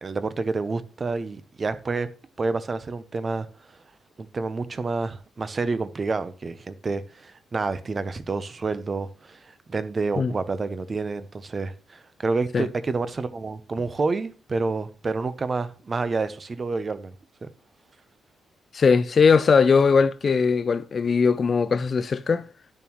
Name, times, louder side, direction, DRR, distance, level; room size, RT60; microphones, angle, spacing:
voice 1, 0.0-2.1 2.4-3.5 4.2-17.1 17.4-17.5, right 3 dB, 25° right, 0.6 m, -29 dB
voice 2, 18.7-22.5, left 5 dB, 35° left, 0.3 m, -20 dB
10.5 x 7.1 x 3.0 m
cardioid pair, 160°, 0 cm